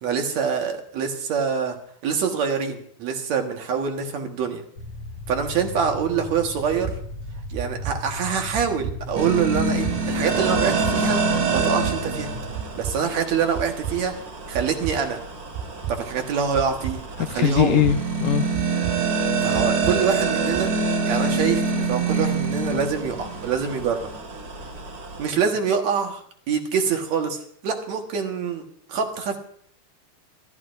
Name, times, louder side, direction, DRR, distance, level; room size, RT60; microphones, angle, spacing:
voice 1, 0.0-1.8 2.0-4.6 5.3-7.0 7.5-11.2 11.5-12.3 12.8-14.2 14.5-15.2 15.9-17.0 17.3-17.8 19.4-20.7 21.1-24.1 25.2-26.2 26.5-28.6 28.9-29.4, right 6 dB, 55° right, 3 dB, 2.3 m, -25 dB
sound 1, 4.8-12.5, left 1 dB, 45° left, 2.8 m, -36 dB
sound 2, 6.6-7.0 7.5-8.0 8.5-9.0 9.5-10.0 10.5-11.0 11.5-12.0 12.5-13.0 13.5-14.0 14.5-15.0 15.5-16.0 16.5-17.0 17.5-18.0 18.5-19.0 19.5-20.0 20.5-20.6, right 9 dB, 75° right, 2.6 m, -31 dB
sound 3, 9.1-25.3, right 4 dB, 40° right, 2.5 m, -26 dB
voice 2, 17.2-18.5, left 9 dB, 70° left, 6 dB, 2.1 m, -21 dB
27.0 x 13.5 x 2.6 m, 0.62 s
omnidirectional pair, 4.4 m